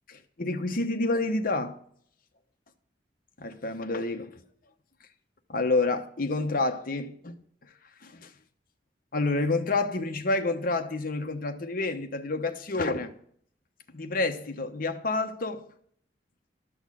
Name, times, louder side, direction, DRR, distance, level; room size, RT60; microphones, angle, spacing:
voice 1, 0.1-1.8 3.4-4.4 5.5-8.3 9.1-13.2 13.9-15.7, left 3 dB, 50° left, 1.1 m, -29 dB
12.5 x 6.4 x 6.3 m
head